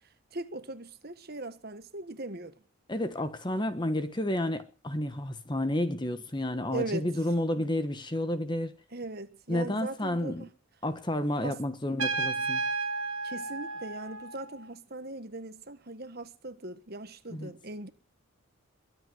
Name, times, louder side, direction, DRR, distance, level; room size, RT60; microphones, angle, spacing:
voice 1, 0.3-2.5 6.7-7.1 7.6-7.7 8.9-10.5 11.4-11.5 13.2-17.9, right 2 dB, 45° right, 1.5 m, -39 dB
voice 2, 2.9-8.8 9.5-10.5 10.8-12.6 17.3-17.5, left 1 dB, 20° left, 1.2 m, -31 dB
Trumpet, 12.0-14.6, right 4 dB, 70° right, 3.4 m, -32 dB
22.5 x 8.0 x 7.8 m
head